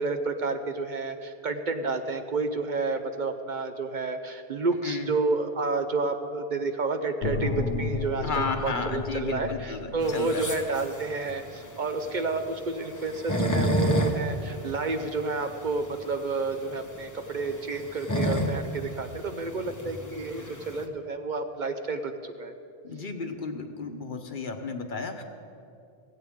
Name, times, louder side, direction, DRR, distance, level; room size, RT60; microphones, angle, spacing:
voice 1, 0.0-22.5, right 3 dB, 50° right, 7 dB, 0.8 m, -30 dB
sound 1, 7.2-10.6, left 4 dB, 80° left, 1.2 m, -33 dB
voice 2, 8.2-10.5 22.8-25.2, left 4 dB, 55° left, 5 dB, 1.1 m, -33 dB
sound 2, 10.0-20.9, equal, 20° left, 0.9 m, -31 dB
16.0 x 16.0 x 3.6 m, 2.5 s
omnidirectional pair, 1.1 m